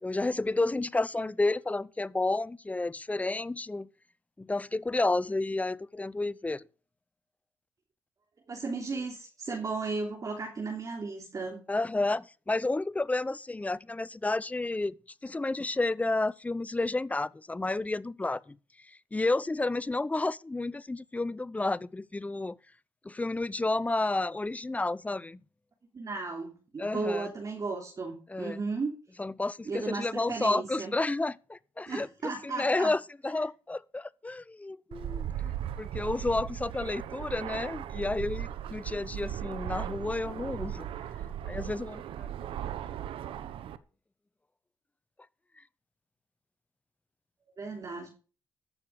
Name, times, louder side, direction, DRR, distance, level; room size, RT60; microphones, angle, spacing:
voice 1, 0.0-3.9 4.4-6.6 11.7-15.0 15.2-18.6 19.1-22.6 23.0-25.4 26.8-27.3 28.3-28.6 29.2-32.1 32.4-40.9 41.4-42.3, left 2 dB, 15° left, 0.6 m, -31 dB
voice 2, 8.5-11.6 25.9-28.9 29.6-30.9 31.9-32.9 47.6-48.1, right 3 dB, 40° right, 3.2 m, -35 dB
Fixed-wing aircraft airplane, 34.9-43.8, right 10 dB, 80° right, 1.0 m, -37 dB
14.0 x 6.6 x 6.9 m
cardioid pair, 85°, 9 cm